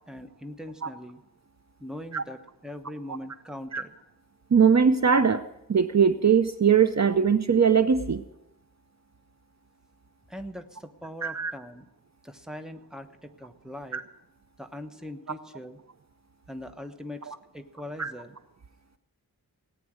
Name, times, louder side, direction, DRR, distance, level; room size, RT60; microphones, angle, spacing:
voice 1, 0.1-1.2 1.8-3.9 10.3-11.9 12.2-14.0 14.6-15.8 16.5-18.4, left 1 dB, ahead, 7 dB, 1.1 m, -41 dB
voice 2, 4.5-5.4 5.7-8.2 11.2-11.5 13.9-14.0 17.3-17.4 18.0-18.1, right 6 dB, 45° right, 11 dB, 0.7 m, -21 dB
18.5 x 9.2 x 6.3 m, 0.87 s
wide cardioid pair, 80°, 38 cm